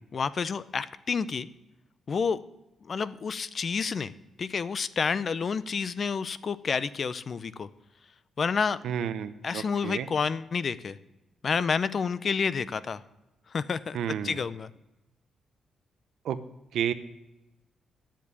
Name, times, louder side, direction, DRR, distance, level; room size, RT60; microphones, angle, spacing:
voice 1, 0.1-1.5 2.1-2.4 2.9-4.1 4.4-7.7 8.4-8.8 9.4-11.0 11.4-13.0 13.5-14.0 14.2-14.7, left 5 dB, 40° left, 16 dB, 0.5 m, -29 dB
voice 2, 8.8-10.1 13.9-14.4 16.2-16.4 16.7-16.9, right 9 dB, 80° right, 12 dB, 0.7 m, -31 dB
9.4 x 7.4 x 8.2 m, 0.96 s
cardioid pair, 125°, 0 cm